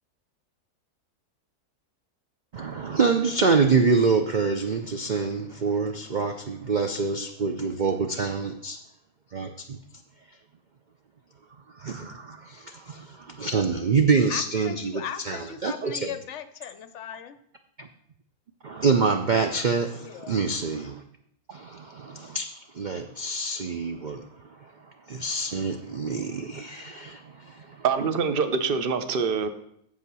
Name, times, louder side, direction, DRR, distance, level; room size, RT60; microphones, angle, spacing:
voice 1, 2.5-8.8 9.3-9.8 11.8-16.1 17.8-17.9 18.6-21.0 21.5-22.5 22.7-24.3 24.6-24.7 25.1-27.8, right 4 dB, 70° right, 0.4 m, -26 dB
voice 2, 14.3-17.4 19.9-20.4, left 9 dB, 60° left, 0.8 m, -38 dB
voice 3, 27.8-29.5, right 5 dB, 45° right, 0.8 m, -25 dB
8.5 x 7.5 x 6.1 m
omnidirectional pair, 1.7 m